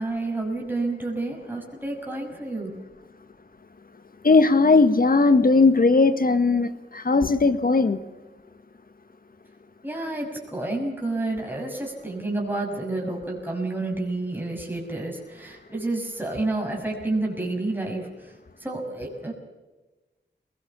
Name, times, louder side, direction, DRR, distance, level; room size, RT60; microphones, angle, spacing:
voice 1, 0.0-2.7 9.8-18.1 18.6-19.3, right 2 dB, 10° right, 6.2 m, -29 dB
voice 2, 4.2-8.0, left 3 dB, 50° left, 1.6 m, -18 dB
22.0 x 19.0 x 7.3 m
wide cardioid pair, 80°, 19 cm